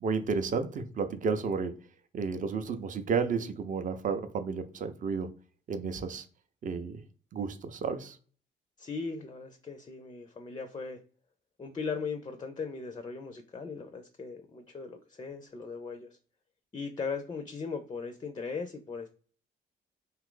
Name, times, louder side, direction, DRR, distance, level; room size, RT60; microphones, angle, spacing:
voice 1, 0.0-1.8 2.1-5.3 5.7-6.2 6.6-7.0 7.3-8.2, right 5 dB, 40° right, 0.5 m, -32 dB
voice 2, 8.8-11.0 11.6-16.1 16.7-19.1, left 5 dB, 25° left, 0.4 m, -38 dB
2.7 x 2.4 x 3.7 m
cardioid pair, 90°, 20 cm